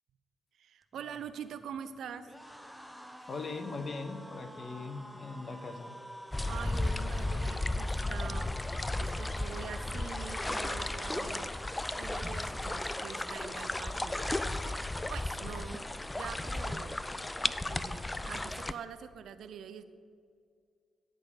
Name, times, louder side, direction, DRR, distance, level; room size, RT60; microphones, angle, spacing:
voice 1, 0.5-2.3 6.5-8.6 9.0-11.5 11.9-14.8 15.1-15.9 16.1-17.0 17.6-19.9, right 8 dB, 70° right, 11 dB, 0.4 m, -44 dB
sound 1, 0.8-16.0 16.4-16.6 16.8-17.6, equal, ahead, 0.7 m, -51 dB
voice 2, 3.3-6.0, left 3 dB, 50° left, 7 dB, 0.9 m, -40 dB
sound 2, 6.3-18.7, left 2 dB, 20° left, 0.4 m, -34 dB
10.5 x 3.7 x 6.8 m, 2.2 s
hypercardioid pair, 40°, 0 cm